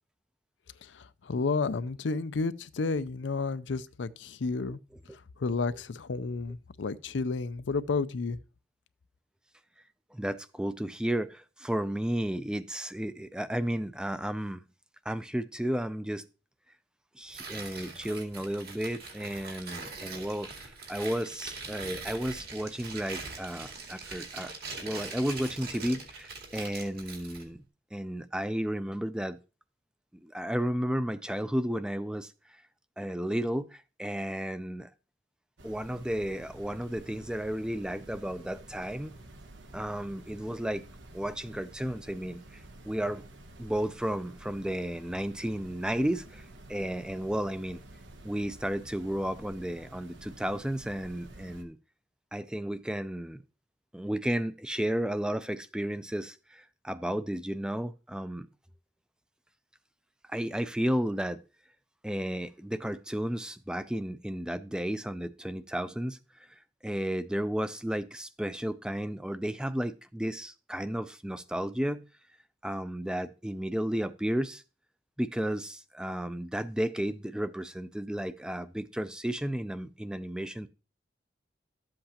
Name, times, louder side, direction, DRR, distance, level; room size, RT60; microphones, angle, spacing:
voice 1, 0.8-4.8 5.4-8.4, left 4 dB, 85° left, 0.5 m, -31 dB
voice 2, 10.1-14.6 15.1-16.2 17.2-24.5 24.8-27.6 27.9-29.4 30.2-32.3 33.0-34.9 35.6-39.1 39.7-40.9 41.1-42.4 42.8-43.2 43.6-46.4 46.7-47.8 48.2-51.8 52.3-53.4 53.9-58.5 60.3-61.4 62.0-66.2 66.8-72.0 72.6-74.6 75.2-80.7, equal, 5° right, 0.4 m, -33 dB
Tearing, 17.3-27.5, right 4 dB, 55° right, 2.2 m, -42 dB
sound 1, 35.6-51.6, right 1 dB, 90° right, 1.1 m, -50 dB
12.5 x 7.7 x 2.9 m
head